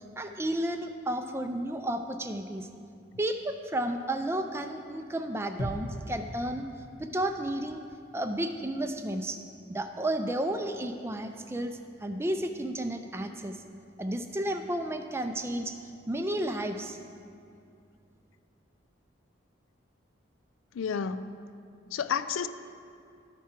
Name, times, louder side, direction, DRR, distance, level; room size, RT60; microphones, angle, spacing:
voice 1, 0.0-2.7 3.2-6.7 7.0-7.8 8.1-9.4 9.7-13.6 14.0-15.8 16.1-17.0, right 1 dB, 15° right, 6 dB, 0.3 m, -32 dB
sound 1, 5.6-9.5 9.8-9.9, equal, 50° left, 1.0 m, -42 dB
voice 2, 20.7-21.3 21.9-22.5, left 7 dB, 85° left, 12 dB, 0.4 m, -30 dB
13.0 x 4.8 x 4.4 m, 2.5 s
head